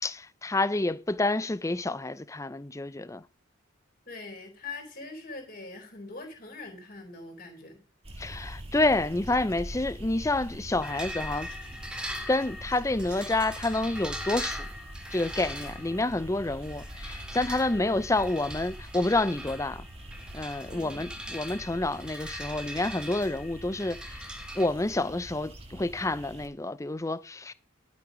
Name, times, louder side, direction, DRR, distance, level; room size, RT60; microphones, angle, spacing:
voice 1, 0.0-3.2 8.2-11.5 12.3-14.7 15.1-19.9 20.3-24.2 24.6-27.5, left 2 dB, 15° left, 0.5 m, -28 dB
voice 2, 4.1-7.8 17.6-17.9 20.7-21.0, left 3 dB, 45° left, 4.0 m, -43 dB
sound 1, 8.0-26.5, right 1 dB, 30° right, 1.8 m, -44 dB
sound 2, 10.8-24.7, equal, 5° right, 1.4 m, -41 dB
12.0 x 6.2 x 5.2 m
head